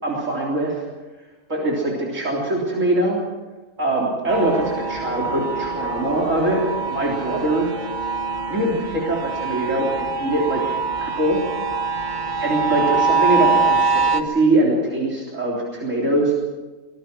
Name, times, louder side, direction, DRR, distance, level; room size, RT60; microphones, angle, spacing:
voice 1, 0.0-0.8 1.5-3.2 3.8-6.6 6.9-7.7 8.5-11.4 12.4-16.3, right 2 dB, 65° right, -4 dB, 4.0 m, -22 dB
sound 1, 4.3-14.2, right 4 dB, 35° right, 1.5 m, -24 dB
24.5 x 20.0 x 6.2 m, 1.2 s
omnidirectional pair, 1.4 m